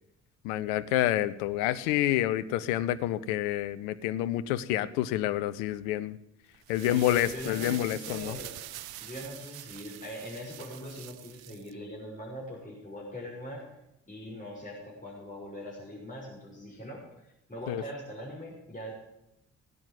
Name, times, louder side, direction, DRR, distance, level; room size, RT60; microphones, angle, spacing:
voice 1, 0.4-6.2 6.7-8.4 17.7-17.8, left 13 dB, 75° left, 13 dB, 0.8 m, -28 dB
sound 1, 6.5-11.7, right 13 dB, 65° right, 0.9 m, -44 dB
voice 2, 6.9-8.6 9.0-13.6 14.1-18.9, equal, 20° left, -5 dB, 6.7 m, -42 dB
17.0 x 9.3 x 7.9 m, 0.86 s
figure-of-eight pair, 40°, 39 cm